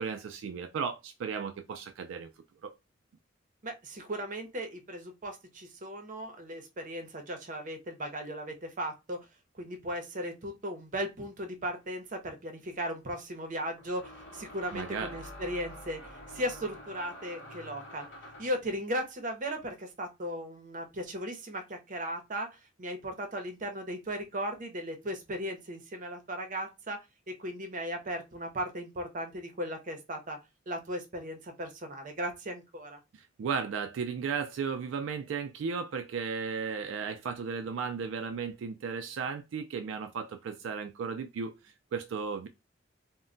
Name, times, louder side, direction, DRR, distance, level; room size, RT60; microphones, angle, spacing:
voice 1, 0.0-2.3 2.6-2.7 14.7-15.2 33.1-42.5, right 6 dB, 85° right, 0.3 m, -35 dB
voice 2, 3.6-9.2 9.6-18.1 18.4-27.0 27.3-30.4 30.7-33.0, equal, 45° right, 0.7 m, -37 dB
sound 1, 11.8-11.9 13.8-18.6, left 1 dB, 65° left, 0.9 m, -47 dB
2.1 x 2.1 x 3.7 m
head